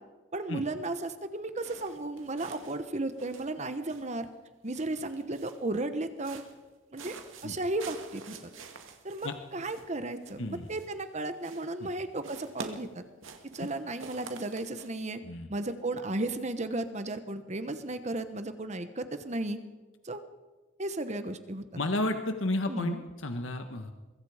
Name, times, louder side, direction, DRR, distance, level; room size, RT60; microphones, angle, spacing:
voice 1, 0.3-4.3 4.6-6.4 6.9-7.2 7.4-8.3 9.0-13.0 13.5-15.2 15.5-19.6 20.0-20.2 20.8-21.6 22.7-23.0, right 2 dB, 35° right, 10 dB, 1.1 m, -34 dB
sound 1, 1.6-2.9 3.1-4.3 4.7-5.7 6.2-6.7 7.0-11.1 11.4-11.9 12.2-14.9, right 4 dB, 90° right, 2.3 m, -48 dB
voice 2, 10.4-10.7 11.8-11.9 15.2-15.5 21.7-23.9, left 2 dB, 75° left, 6 dB, 1.4 m, -32 dB
23.5 x 23.0 x 5.0 m, 1.2 s
head